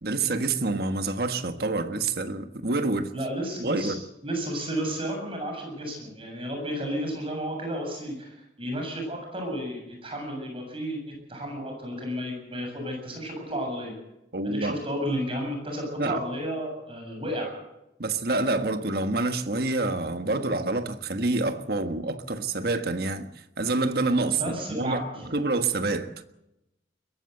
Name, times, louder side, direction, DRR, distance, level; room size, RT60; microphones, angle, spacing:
voice 1, 0.0-3.1 3.6-4.0 14.3-14.8 16.0-16.2 18.0-23.3 23.6-26.1, right 2 dB, 55° right, 1.5 m, -27 dB
voice 2, 3.1-4.0 4.2-14.0 14.4-17.5 24.4-25.0, equal, 30° right, 7.3 m, -32 dB
22.0 x 15.0 x 8.0 m
head